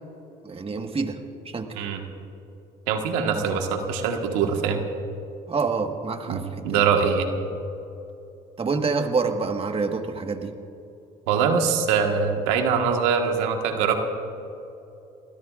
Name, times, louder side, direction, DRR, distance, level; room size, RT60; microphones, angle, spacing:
voice 1, 0.4-1.2 1.5-1.8 5.5-6.8 8.6-10.5, right 4 dB, 30° right, 5 dB, 1.6 m, -27 dB
voice 2, 2.9-4.8 6.3-7.3 11.3-14.0, right 6 dB, 90° right, 3 dB, 1.6 m, -23 dB
27.5 x 20.5 x 2.5 m, 2.8 s
supercardioid pair, 80°, 18 cm